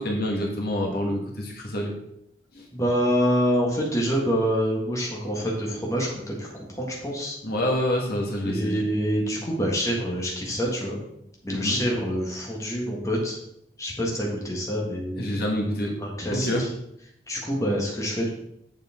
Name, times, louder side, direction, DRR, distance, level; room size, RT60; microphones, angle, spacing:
voice 1, 0.0-1.9 2.5-2.6 7.4-8.8 11.5-11.8 15.2-15.9 16.3-16.6, left 1 dB, 55° left, -1 dB, 1.7 m, -27 dB
voice 2, 2.7-7.4 8.4-11.0 11.4-13.4 13.8-15.5 16.0-16.7 17.3-18.3, equal, 15° left, -2 dB, 1.6 m, -26 dB
7.2 x 6.7 x 3.7 m, 0.77 s
head